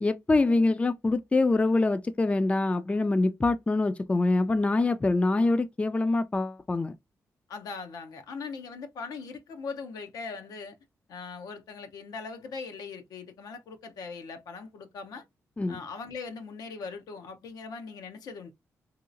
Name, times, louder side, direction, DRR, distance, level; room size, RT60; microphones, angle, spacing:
voice 1, 0.0-6.9 15.6-15.8, left 2 dB, 20° left, 0.3 m, -25 dB
voice 2, 7.5-10.8 11.1-15.2 15.7-18.5, left 4 dB, 85° left, 0.6 m, -40 dB
3.0 x 2.8 x 2.5 m
cardioid pair, 70°, 6 cm